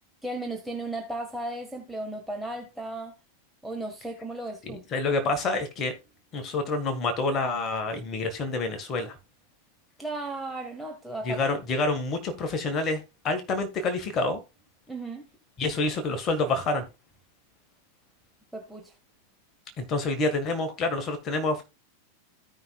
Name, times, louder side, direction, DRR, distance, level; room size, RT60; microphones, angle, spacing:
voice 1, 0.2-3.1 3.6-4.8 10.0-11.5 14.9-15.3 18.5-18.9, right 2 dB, ahead, 1.6 m, -35 dB
voice 2, 4.6-5.9 6.3-9.1 11.2-14.4 15.6-16.8 19.8-21.6, left 3 dB, 30° left, 1.6 m, -28 dB
15.5 x 5.5 x 2.3 m
figure-of-eight pair, 90°, 0 cm